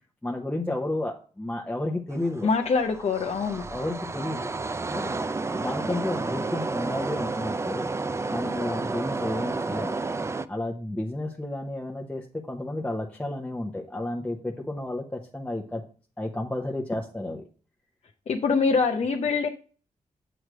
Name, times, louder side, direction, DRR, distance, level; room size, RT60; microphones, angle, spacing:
voice 1, 0.2-2.5 3.7-4.5 4.9-5.1 5.6-7.9 8.3-10.0 10.5-15.8 16.2-17.4, left 1 dB, 10° left, 0 dB, 0.8 m, -31 dB
sound 1, 2.1-10.5, right 3 dB, 20° right, 0.4 m, -31 dB
voice 2, 2.4-3.7 18.3-19.5, left 4 dB, 55° left, 4 dB, 0.6 m, -24 dB
7.9 x 3.3 x 6.1 m, 0.39 s
wide cardioid pair, 115°, 13 cm